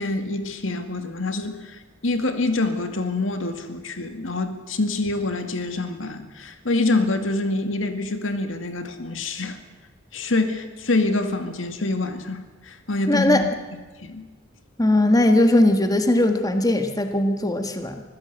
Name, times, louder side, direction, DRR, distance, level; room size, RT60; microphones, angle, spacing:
voice 1, 0.0-9.6 10.1-13.5 14.0-14.3, left 2 dB, 90° left, 7 dB, 2.1 m, -26 dB
voice 2, 13.1-13.5 14.8-18.0, left 1 dB, 20° left, 6 dB, 1.6 m, -19 dB
24.5 x 15.5 x 8.0 m, 1.3 s
head